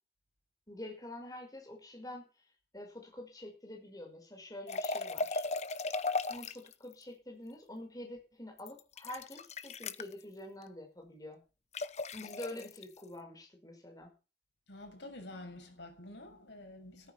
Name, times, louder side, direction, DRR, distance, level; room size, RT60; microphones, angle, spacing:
voice 1, 0.7-2.3 2.7-5.4 6.3-11.4 12.1-14.1, left 1 dB, 20° left, 5.8 m, -47 dB
sound 1, 4.7-6.7 8.6-10.1 11.7-12.8, left 3 dB, 40° left, 1.0 m, -36 dB
voice 2, 14.7-17.1, left 1 dB, 85° left, 6.8 m, -48 dB
14.5 x 14.0 x 6.0 m
head